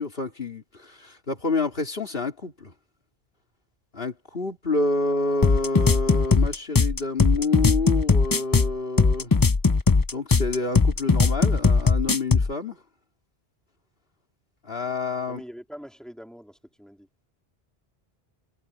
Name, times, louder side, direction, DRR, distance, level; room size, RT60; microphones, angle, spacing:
voice 1, 0.0-2.7 3.9-9.3 10.1-12.8 14.6-15.4, left 3 dB, 65° left, 3.2 m, -28 dB
sound 1, 5.4-12.5, left 4 dB, 25° left, 0.5 m, -19 dB
voice 2, 15.3-17.1, equal, ahead, 3.9 m, -43 dB
omnidirectional pair, 1.1 m